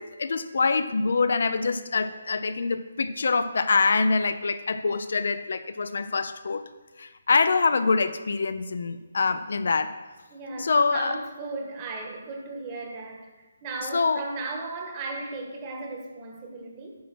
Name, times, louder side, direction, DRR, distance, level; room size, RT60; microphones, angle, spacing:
voice 1, 0.0-6.6 7.0-9.9 10.6-11.2 13.9-14.2, left 4 dB, 55° left, 11 dB, 0.6 m, -25 dB
voice 2, 10.3-13.3 13.6-17.0, right 3 dB, 20° right, 2 dB, 1.3 m, -36 dB
9.5 x 7.3 x 6.1 m, 1.2 s
hypercardioid pair, 175°, 0 cm